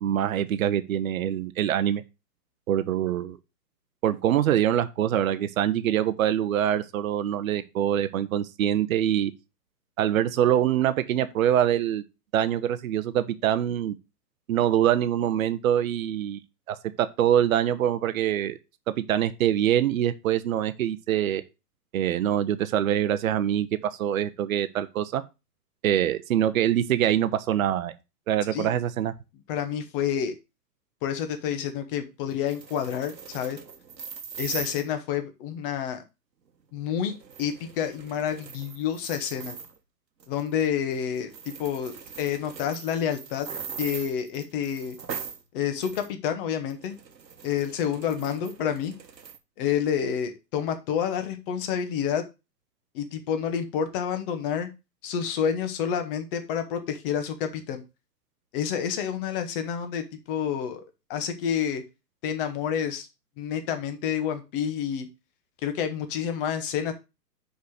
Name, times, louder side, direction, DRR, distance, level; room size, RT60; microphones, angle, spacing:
voice 1, 0.0-2.0 2.7-3.4 4.0-9.3 10.0-12.0 12.3-13.9 14.5-16.4 17.0-18.6 19.1-21.4 21.9-25.2 25.8-27.9 28.3-29.1, right 11 dB, 55° right, 0.9 m, -24 dB
voice 2, 29.5-30.3 31.0-33.6 34.4-36.0 36.7-39.5 40.3-43.5 43.8-45.0 45.5-46.9 47.4-48.9 49.6-52.2 52.9-54.7 55.0-57.8 58.5-60.8 61.1-61.8 62.2-63.1 63.4-65.1 65.6-66.9, left 8 dB, 35° left, 1.4 m, -29 dB
sound 1, 32.3-34.9 37.0-39.8 40.2-40.7 40.9-41.0 41.3-45.4 45.8-46.1 46.5-49.4, right 6 dB, 90° right, 1.4 m, -41 dB
5.4 x 5.1 x 6.5 m
hypercardioid pair, 135°, 49 cm